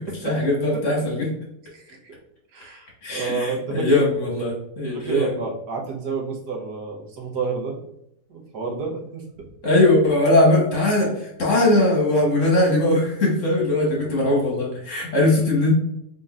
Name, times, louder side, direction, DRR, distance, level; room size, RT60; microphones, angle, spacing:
voice 1, 0.2-1.3 3.0-5.3 9.6-15.7, left 1 dB, 50° left, -2 dB, 1.2 m, -20 dB
voice 2, 1.7-2.1 2.5-4.0 4.9-7.8 8.3-9.5, right 4 dB, 70° right, 0 dB, 1.4 m, -30 dB
4.0 x 3.8 x 2.3 m, 0.77 s
omnidirectional pair, 1.9 m